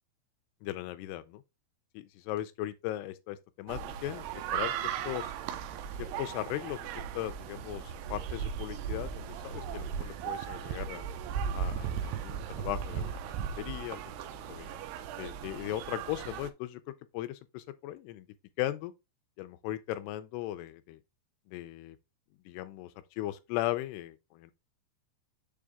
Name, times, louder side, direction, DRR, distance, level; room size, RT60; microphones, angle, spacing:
voice 1, 0.6-1.4 1.9-5.3 6.0-6.8 7.2-11.1 11.5-13.2 13.6-14.0 14.5-14.7 15.2-16.8 17.1-18.3 18.6-18.9 19.4-21.0 21.5-22.0 22.5-22.9 23.2-24.5, left 14 dB, 80° left, 2.6 m, -37 dB
sound 1, 3.7-16.5, right 8 dB, 80° right, 2.6 m, -37 dB
6.9 x 3.9 x 3.5 m
omnidirectional pair, 4.9 m